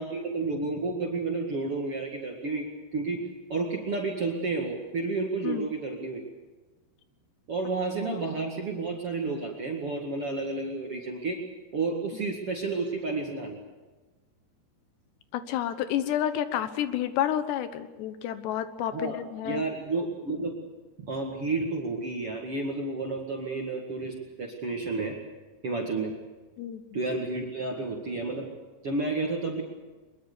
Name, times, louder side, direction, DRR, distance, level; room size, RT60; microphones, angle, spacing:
voice 1, 0.0-6.2 7.5-11.4 11.7-13.6 18.9-19.2 19.4-20.6 21.1-25.2 25.6-26.2 26.9-28.5 28.8-29.6, right 3 dB, 45° right, 0 dB, 2.3 m, -31 dB
voice 2, 15.3-19.6 26.6-27.0, left 11 dB, 85° left, 11 dB, 3.4 m, -30 dB
23.0 x 22.0 x 6.9 m, 1.2 s
omnidirectional pair, 4.8 m